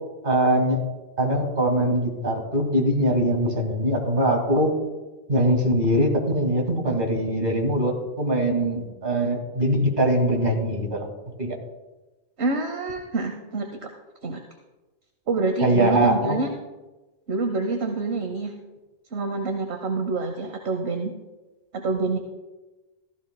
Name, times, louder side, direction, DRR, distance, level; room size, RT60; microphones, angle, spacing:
voice 1, 0.2-0.8 1.2-4.7 5.3-11.1 11.4-11.6 15.6-16.4, right 1 dB, 45° right, 1 dB, 2.3 m, -22 dB
voice 2, 12.4-13.9 14.2-14.4 15.3-16.5 17.3-18.5 19.1-21.1 21.7-22.2, right 3 dB, 65° right, 5 dB, 1.2 m, -27 dB
15.0 x 15.0 x 2.2 m, 1.1 s
omnidirectional pair, 1.2 m